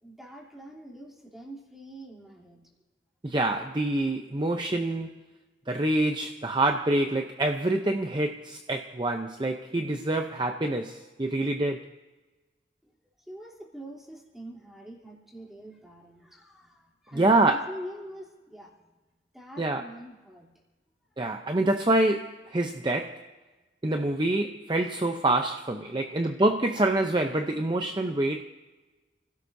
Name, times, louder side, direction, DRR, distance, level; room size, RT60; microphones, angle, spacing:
voice 1, 0.0-2.7 12.8-13.0 13.3-18.9 19.3-20.6 25.9-26.2, right 1 dB, ahead, 3.2 m, -45 dB
voice 2, 3.2-5.1 5.7-11.9 17.1-17.6 19.6-19.8 21.2-23.3 23.8-28.4, right 2 dB, 25° right, 0.6 m, -26 dB
29.0 x 17.0 x 2.7 m
head